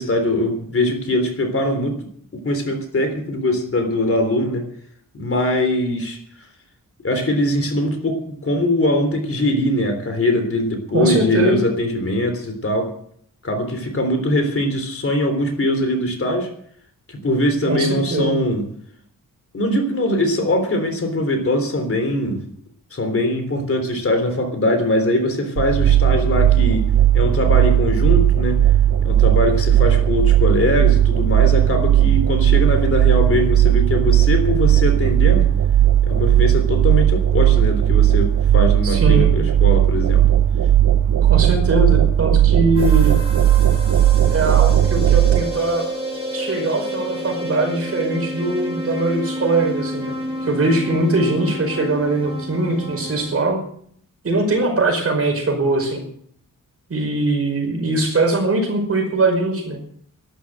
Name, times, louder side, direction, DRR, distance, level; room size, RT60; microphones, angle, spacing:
voice 1, 0.0-2.0 2.4-4.7 5.1-6.2 7.0-12.9 13.4-16.5 17.1-18.6 19.5-22.4 22.9-28.6 29.0-35.5 36.0-40.3, left 1 dB, 40° left, 6 dB, 3.5 m, -21 dB
voice 2, 10.9-11.6 17.7-18.3 38.8-39.3 41.2-43.1 44.3-45.9 46.3-50.1 50.4-53.6 54.2-56.0 56.9-59.8, right 2 dB, 45° right, 2 dB, 5.3 m, -21 dB
sound 1, 25.6-45.4, right 11 dB, 80° right, 1.2 m, -16 dB
sound 2, 42.8-53.3, equal, 15° right, 7.0 m, -30 dB
12.5 x 11.5 x 7.9 m, 0.64 s
wide cardioid pair, 135°, 33 cm